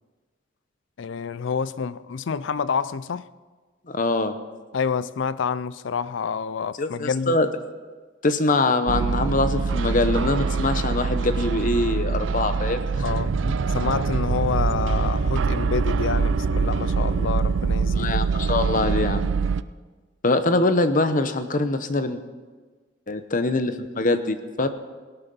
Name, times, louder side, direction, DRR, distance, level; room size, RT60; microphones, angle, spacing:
voice 1, 1.0-3.3 4.7-7.4 13.0-13.3 13.7-18.1, left 6 dB, 65° left, 0.4 m, -28 dB
voice 2, 3.9-4.3 6.8-7.5 8.2-12.8 13.4-13.5 17.9-19.3 20.2-22.2 23.1-24.7, left 2 dB, 40° left, 0.9 m, -23 dB
sound 1, 8.9-19.6, right 4 dB, 70° right, 0.4 m, -24 dB
18.0 x 11.5 x 5.4 m
head